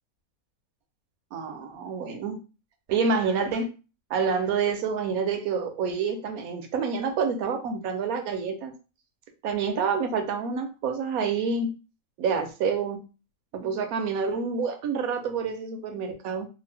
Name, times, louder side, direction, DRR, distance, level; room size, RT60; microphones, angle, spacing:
voice 1, 1.3-2.4 2.9-3.7 4.1-8.7 9.4-11.7 12.2-13.0 13.5-16.5, right 5 dB, 80° right, 5 dB, 1.1 m, -28 dB
2.8 x 2.4 x 3.3 m, 0.33 s
omnidirectional pair, 1.5 m